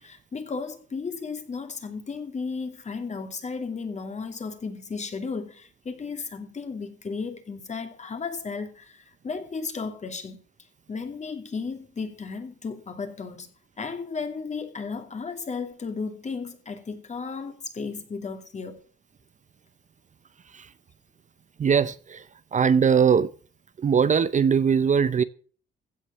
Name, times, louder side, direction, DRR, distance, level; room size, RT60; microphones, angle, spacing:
voice 1, 0.0-10.4 10.9-13.5 13.8-18.8, left 4 dB, 35° left, 2.6 m, -34 dB
voice 2, 21.6-23.3 23.8-25.2, right 7 dB, 40° right, 0.6 m, -21 dB
15.5 x 6.5 x 7.2 m
cardioid pair, 90°, 20 cm